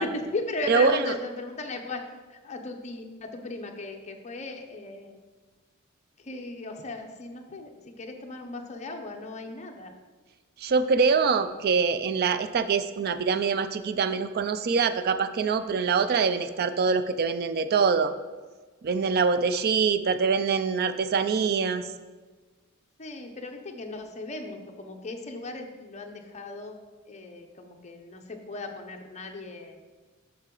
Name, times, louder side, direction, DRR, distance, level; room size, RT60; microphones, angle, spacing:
voice 1, 0.0-2.0 2.3-5.1 6.2-9.9 23.0-26.8 27.1-29.8, left 2 dB, 35° left, 3 dB, 0.7 m, -37 dB
voice 2, 0.7-1.1 10.6-18.1 18.8-21.9, right 5 dB, 45° right, 11 dB, 0.4 m, -24 dB
7.2 x 5.8 x 3.8 m, 1.3 s
head